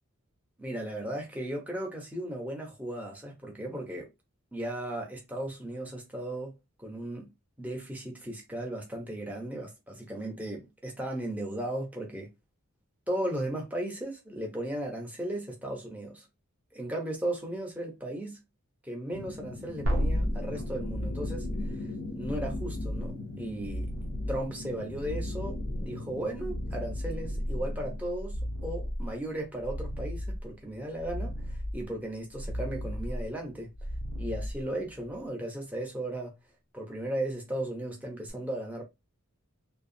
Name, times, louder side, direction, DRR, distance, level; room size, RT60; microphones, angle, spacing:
voice 1, 0.6-4.1 4.5-7.3 7.6-12.3 13.1-16.3 16.7-18.4 18.8-21.5 21.8-21.9 22.1-23.9 24.3-33.7 34.2-36.3 36.7-38.8, right 1 dB, 5° right, 0.7 m, -36 dB
sound 1, 19.1-28.0, left 2 dB, 70° left, 0.5 m, -41 dB
sound 2, 19.8-35.1 38.3-38.4, equal, 80° right, 0.8 m, -34 dB
2.8 x 2.3 x 2.6 m
head